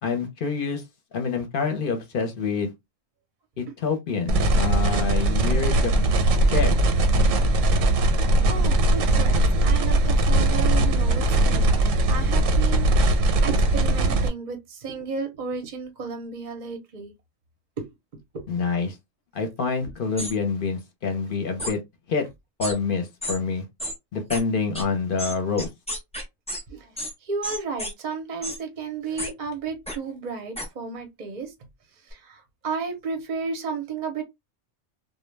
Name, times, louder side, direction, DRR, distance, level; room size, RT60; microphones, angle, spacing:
voice 1, 0.0-0.8 1.1-2.7 3.6-5.9 6.5-6.7 18.5-19.0 19.3-21.8 22.1-22.3 22.6-23.6 24.1-25.7, left 5 dB, 55° left, 0.7 m, -27 dB
sound 1, 4.3-14.3, right 1 dB, 90° right, 1.0 m, -20 dB
voice 2, 8.5-17.1 17.8-17.9 18.3-18.4 26.7-26.9 27.2-31.5 32.1-34.2, right 5 dB, 50° right, 0.6 m, -33 dB
sound 2, 20.2-20.3 21.6-21.7 22.6-22.8 23.2-23.4 23.8-24.0 24.3-24.4 24.8-24.9 25.2-26.6 27.0-27.1 27.4-27.9 28.4-28.6 29.2-29.3 29.9-30.0 30.6-30.7, equal, 10° left, 0.5 m, -31 dB
2.2 x 2.2 x 3.1 m
omnidirectional pair, 1.3 m